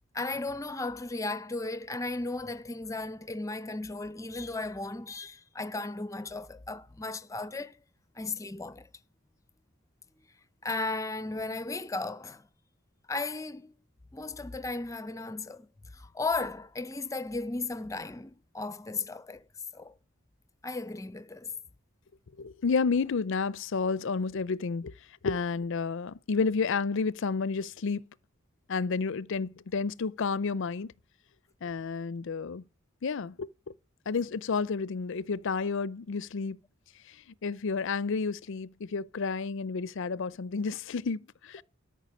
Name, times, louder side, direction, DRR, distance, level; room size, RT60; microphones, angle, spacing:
voice 1, 0.1-7.8 8.2-8.9 10.6-12.5 13.1-13.7 14.1-15.7 15.9-19.4 19.7-19.9 20.6-21.5, left 3 dB, 15° left, 0.6 m, -35 dB
voice 2, 22.4-24.9 25.2-28.0 28.7-30.9 31.6-32.6 33.0-33.7 34.1-36.6 37.1-37.2 37.4-41.6, left 4 dB, 65° left, 0.5 m, -31 dB
13.5 x 5.7 x 8.5 m
head